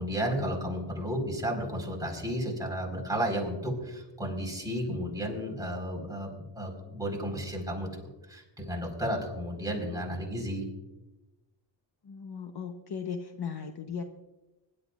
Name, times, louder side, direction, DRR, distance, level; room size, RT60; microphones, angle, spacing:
voice 1, 0.0-10.7, equal, 10° right, -2 dB, 4.5 m, -33 dB
voice 2, 12.0-14.0, left 6 dB, 55° left, 5 dB, 1.1 m, -37 dB
25.0 x 12.0 x 2.5 m, 1.0 s
wide cardioid pair, 110°, 47 cm